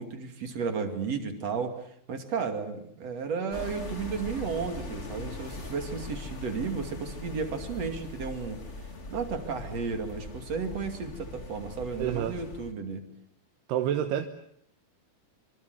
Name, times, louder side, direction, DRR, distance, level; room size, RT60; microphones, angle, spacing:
voice 1, 0.0-1.8 2.1-8.6 9.1-13.1, right 5 dB, 45° right, 6 dB, 3.4 m, -33 dB
sound 1, 3.5-12.7, left 2 dB, 25° left, 1.6 m, -41 dB
voice 2, 12.0-12.4 13.7-14.3, right 10 dB, 85° right, 7 dB, 3.3 m, -28 dB
26.0 x 25.0 x 8.0 m, 0.70 s
omnidirectional pair, 4.6 m